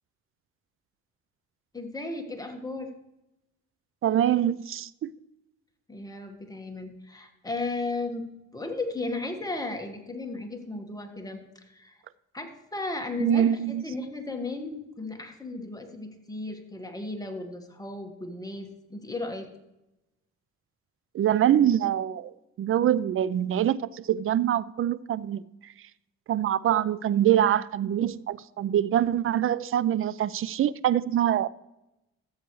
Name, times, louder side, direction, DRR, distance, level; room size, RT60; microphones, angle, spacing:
voice 1, 1.7-2.9 5.9-8.3 8.5-12.0 12.3-13.5 13.8-19.5, left 2 dB, 10° left, 1.5 m, -35 dB
voice 2, 4.0-5.1 13.2-13.8 21.1-25.4 26.3-31.5, right 10 dB, 45° right, 0.4 m, -24 dB
13.5 x 8.1 x 3.1 m
cardioid pair, 90°, 30 cm